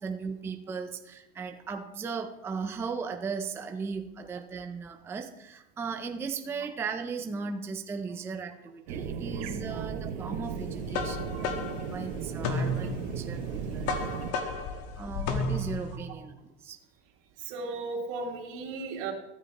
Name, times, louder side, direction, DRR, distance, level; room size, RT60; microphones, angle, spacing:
voice 1, 0.0-14.1 15.0-16.8, right 5 dB, 10° right, 6 dB, 0.4 m, -37 dB
sound 1, 8.9-14.3, right 7 dB, 70° right, 1.5 m, -36 dB
sound 2, 10.5-16.0, left 3 dB, 45° left, 1.4 m, -33 dB
voice 2, 17.4-19.1, right 3 dB, 55° right, -1 dB, 3.2 m, -36 dB
14.5 x 13.0 x 2.9 m, 0.91 s
supercardioid pair, 160°, 33 cm